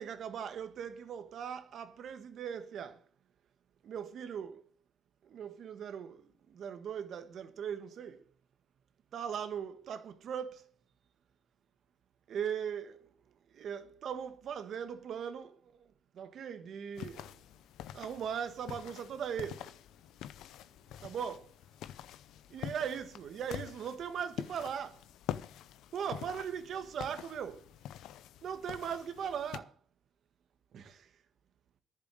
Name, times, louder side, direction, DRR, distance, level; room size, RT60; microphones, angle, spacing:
voice 1, 0.0-3.0 3.8-4.7 5.2-8.2 9.1-10.7 12.3-13.1 13.5-17.4 17.9-19.8 21.0-21.5 22.5-25.0 25.9-27.7 28.4-29.7 30.7-31.1, right 8 dB, 65° right, 1.5 m, -39 dB
sound 1, 17.0-29.6, left 11 dB, 85° left, 0.7 m, -46 dB
11.0 x 7.5 x 7.8 m
cardioid pair, 90°, 0 cm